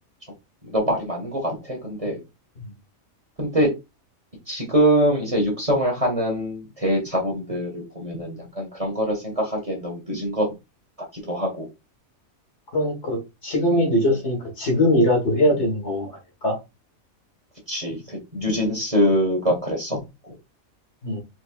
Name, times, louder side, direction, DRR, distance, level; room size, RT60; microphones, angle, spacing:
voice 1, 0.6-2.2 3.4-3.7 4.5-10.5 11.3-11.7 15.4-15.5 17.7-20.0, equal, 25° right, 1.6 m, -24 dB
voice 2, 12.7-16.1 16.4-16.6 21.0-21.2, left 1 dB, 55° left, 2.0 m, -21 dB
4.5 x 4.4 x 2.4 m
omnidirectional pair, 1.4 m